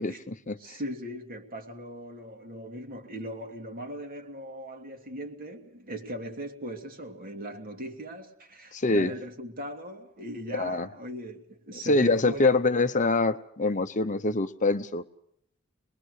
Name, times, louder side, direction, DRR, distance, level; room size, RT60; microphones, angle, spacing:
voice 1, 0.0-0.8 8.7-9.1 10.5-10.9 11.8-15.0, left 3 dB, 35° left, 0.9 m, -25 dB
voice 2, 0.6-12.6, right 1 dB, 40° right, 2.7 m, -39 dB
26.0 x 21.5 x 6.6 m
head